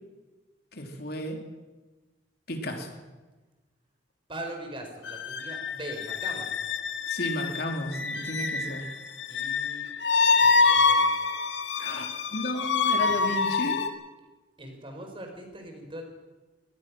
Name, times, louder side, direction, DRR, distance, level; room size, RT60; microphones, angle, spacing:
voice 1, 0.7-1.4 2.5-3.0 7.1-8.9 11.8-12.0 12.3-13.8, equal, 55° left, 4 dB, 3.1 m, -33 dB
voice 2, 4.3-6.5 9.3-9.9 10.4-11.3 12.3-12.6 14.6-16.0, right 1 dB, 30° right, 3 dB, 4.5 m, -41 dB
sound 1, 5.1-13.9, left 4 dB, 80° left, 2.0 m, -26 dB
23.5 x 19.0 x 6.2 m, 1.2 s
head